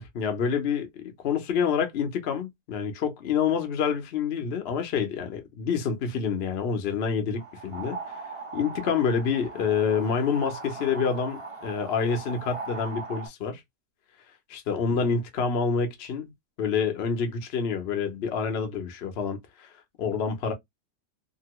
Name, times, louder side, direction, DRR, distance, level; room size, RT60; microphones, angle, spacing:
voice 1, 0.1-13.6 14.5-16.3 16.6-19.7 20.0-20.5, left 6 dB, 50° left, 0.8 m, -27 dB
sound 1, 7.4-13.3, right 4 dB, 45° right, 0.4 m, -39 dB
2.8 x 2.6 x 2.9 m
omnidirectional pair, 1.8 m